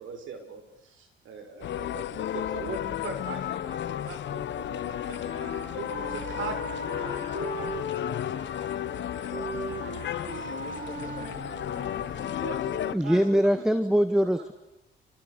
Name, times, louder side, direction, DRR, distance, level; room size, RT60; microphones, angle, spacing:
voice 1, 0.0-7.9 12.4-13.5 14.1-14.2, right 4 dB, 80° right, 6.2 m, -41 dB
sound 1, 1.6-13.0, left 11 dB, 65° left, 1.0 m, -33 dB
Wind instrument woodwind instrument, 4.8-12.9, right 2 dB, 60° right, 7.4 m, -39 dB
voice 2, 9.6-12.8 13.2-14.0, left 6 dB, 40° left, 2.8 m, -45 dB
voice 3, 12.9-14.5, equal, 5° right, 1.5 m, -23 dB
29.0 x 28.0 x 6.8 m
cardioid pair, 90°, 20 cm